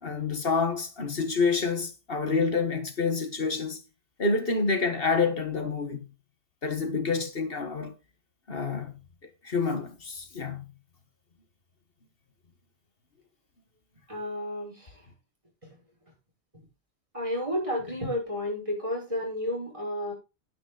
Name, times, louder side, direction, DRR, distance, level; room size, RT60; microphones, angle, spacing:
voice 1, 0.0-3.8 4.2-6.1 6.6-7.9 8.5-9.0 9.4-10.7, left 4 dB, 55° left, 1.7 m, -28 dB
voice 2, 14.1-15.0 17.1-20.1, left 1 dB, 30° right, 5.7 m, -31 dB
9.8 x 9.5 x 3.9 m
omnidirectional pair, 1.1 m